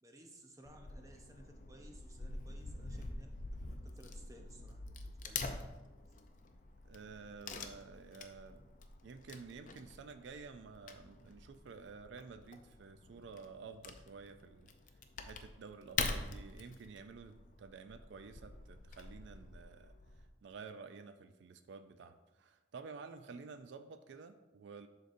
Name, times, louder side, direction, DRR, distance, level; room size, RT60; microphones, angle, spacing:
voice 1, 0.0-5.6, right 1 dB, 15° right, 3 dB, 0.6 m, -59 dB
Wood / Tearing, 0.7-20.3, left 4 dB, 40° left, 0.4 m, -46 dB
voice 2, 6.8-8.7 9.0-14.7 15.2-19.9 20.4-24.9, right 5 dB, 70° right, 9 dB, 0.3 m, -51 dB
11.5 x 4.0 x 2.6 m, 1.1 s
head